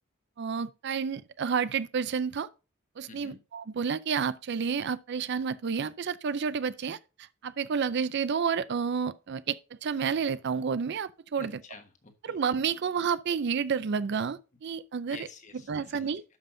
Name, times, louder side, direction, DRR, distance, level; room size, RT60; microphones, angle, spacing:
voice 1, 0.4-2.5 3.0-7.0 7.4-11.5 12.2-15.2 15.7-16.2, right 6 dB, 55° right, 0.4 m, -30 dB
voice 2, 3.1-3.4 11.4-12.4 15.1-16.2, left 4 dB, 35° left, 1.3 m, -49 dB
12.0 x 5.6 x 2.6 m
head